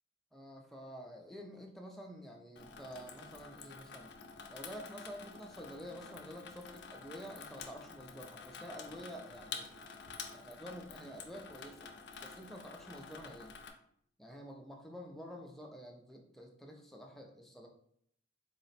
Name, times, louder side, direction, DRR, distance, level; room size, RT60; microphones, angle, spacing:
voice 1, 0.3-4.1 4.5-9.7 10.3-11.9 12.2-13.5 14.2-17.7, equal, ahead, 1 dB, 0.4 m, -49 dB
Water tap faucet / Sink (filling or washing), 2.6-13.7, left 5 dB, 60° left, 0.4 m, -49 dB
4.0 x 2.0 x 4.1 m, 0.67 s
head